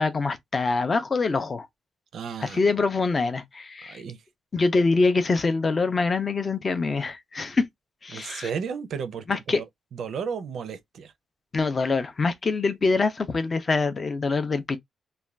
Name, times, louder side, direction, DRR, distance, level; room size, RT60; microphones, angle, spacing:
voice 1, 0.0-1.7 2.4-4.0 4.5-7.6 8.0-8.5 9.3-9.6 11.5-14.8, left 3 dB, 25° left, 0.4 m, -24 dB
voice 2, 2.1-2.7 3.8-4.2 8.1-9.6 9.9-11.1, right 6 dB, 55° right, 0.4 m, -34 dB
2.4 x 2.2 x 3.1 m
wide cardioid pair, 170°, 0 cm